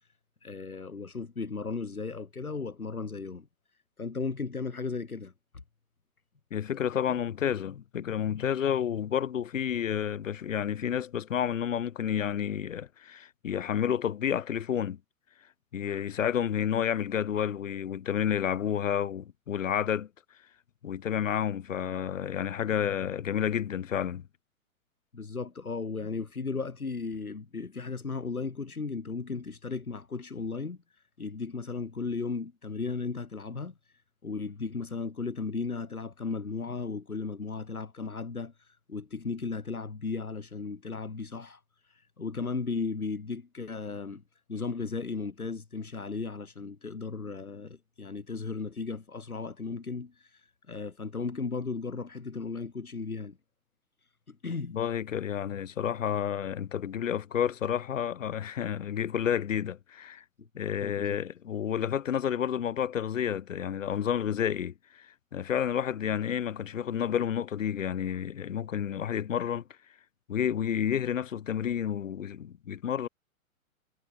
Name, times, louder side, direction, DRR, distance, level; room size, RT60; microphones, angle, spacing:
voice 1, 0.4-3.5 4.0-5.3 7.1-7.2 25.1-33.7 34.2-44.2 44.5-53.4 54.3-54.8 60.4-60.5 60.8-61.2, left 4 dB, 80° left, 2.2 m, -36 dB
voice 2, 6.5-15.0 15.7-20.1 20.8-24.3 54.7-60.2 60.6-69.6 70.3-73.1, left 9 dB, 60° left, 1.5 m, -30 dB
figure-of-eight pair, 110°, 43 cm